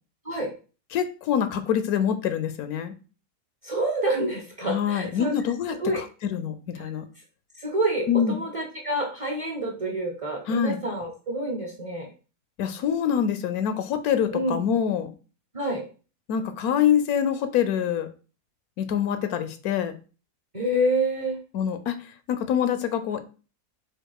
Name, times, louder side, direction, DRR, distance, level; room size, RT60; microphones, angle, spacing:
voice 1, 0.9-2.9 4.6-7.0 8.1-8.4 10.5-10.8 12.6-15.1 16.3-18.1 18.8-19.9 21.5-22.0 22.3-23.2, left 8 dB, 75° left, 10 dB, 1.1 m, -25 dB
voice 2, 3.6-5.3 5.8-6.0 7.6-12.1 14.3-14.6 15.5-15.8 20.5-21.4, right 1 dB, 30° right, 0 dB, 0.7 m, -27 dB
4.4 x 2.4 x 4.7 m, 0.35 s
omnidirectional pair, 1.6 m